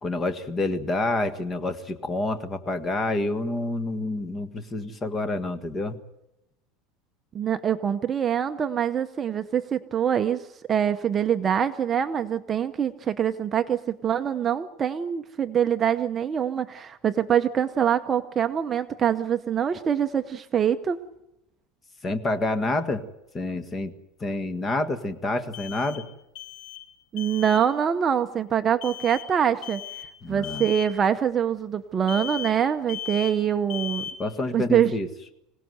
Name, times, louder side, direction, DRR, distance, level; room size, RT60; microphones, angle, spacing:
voice 1, 0.0-6.0 22.0-23.0 23.3-23.9 24.2-26.0 30.2-30.7 34.2-35.1, left 2 dB, 20° left, 9 dB, 1.7 m, -28 dB
voice 2, 7.3-21.0 27.1-29.8 30.3-34.0 34.5-34.9, right 8 dB, 20° right, 8 dB, 0.7 m, -24 dB
sound 1, 22.3-22.4 25.5-26.9 27.2-27.7 28.8-29.3 29.6-30.1 30.4-30.9 32.1-32.6 32.9-33.4 33.7-34.3, left 10 dB, 60° left, 3.7 m, -37 dB
26.0 x 17.5 x 7.9 m, 0.88 s
supercardioid pair, 160°, 0 cm